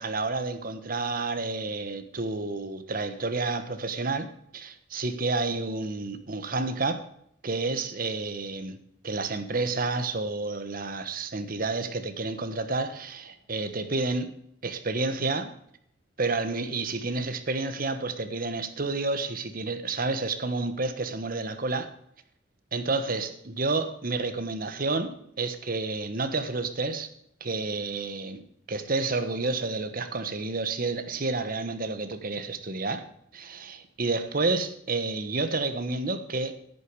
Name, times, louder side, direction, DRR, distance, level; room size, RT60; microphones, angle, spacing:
voice 1, 0.0-7.0 7.4-8.8 9.0-14.3 14.6-15.6 16.2-21.9 22.7-27.1 27.4-28.4 28.7-33.1 33.3-36.6, right 3 dB, 50° right, 9 dB, 1.2 m, -30 dB
10.5 x 10.0 x 4.7 m, 0.71 s
head